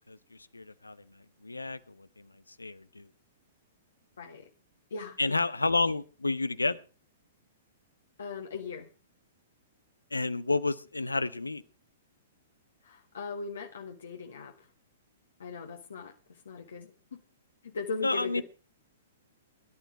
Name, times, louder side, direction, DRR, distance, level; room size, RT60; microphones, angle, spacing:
voice 1, 0.5-1.0 1.4-2.3 2.6-3.1 5.2-6.8 10.1-11.6 18.0-18.4, left 3 dB, 80° left, 16 dB, 0.9 m, -30 dB
voice 2, 4.2-4.5 4.9-5.3 8.2-8.9 12.8-14.7 15.4-17.2 17.6-18.4, left 4 dB, 65° left, 2 dB, 1.6 m, -39 dB
18.0 x 11.5 x 4.8 m, 0.36 s
figure-of-eight pair, 110°, 0 cm